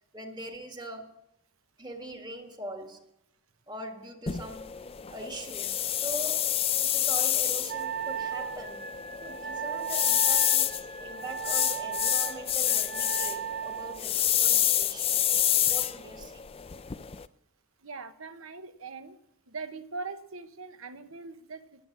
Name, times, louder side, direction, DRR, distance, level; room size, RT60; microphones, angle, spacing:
voice 1, 0.1-1.2 1.8-3.0 3.7-8.9 9.2-15.2 15.7-16.7, right 1 dB, 20° right, 5 dB, 1.6 m, -42 dB
sound 1, 4.3-17.3, left 11 dB, 25° left, 0.4 m, -28 dB
Wind instrument woodwind instrument, 7.7-14.0, right 7 dB, 40° right, 1.1 m, -36 dB
voice 2, 17.8-19.2 19.5-21.9, right 4 dB, 65° right, 10 dB, 1.1 m, -41 dB
19.5 x 7.6 x 7.1 m, 0.80 s
head